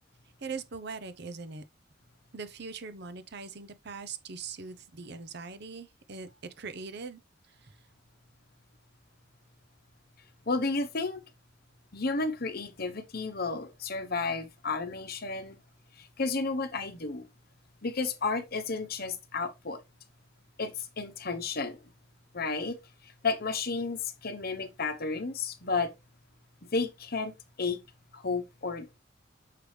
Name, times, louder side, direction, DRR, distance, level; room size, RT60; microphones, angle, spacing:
voice 1, 0.4-1.6 2.3-6.3 6.6-7.2 7.5-7.8, right 4 dB, 55° right, 0.7 m, -41 dB
voice 2, 10.5-11.2 11.9-15.6 16.0-17.2 17.8-19.8 20.6-21.8 22.3-22.8 23.2-25.9 26.7-27.3 27.6-27.8 28.1-29.0, left 4 dB, 50° left, 0.9 m, -32 dB
6.7 x 4.8 x 3.3 m
head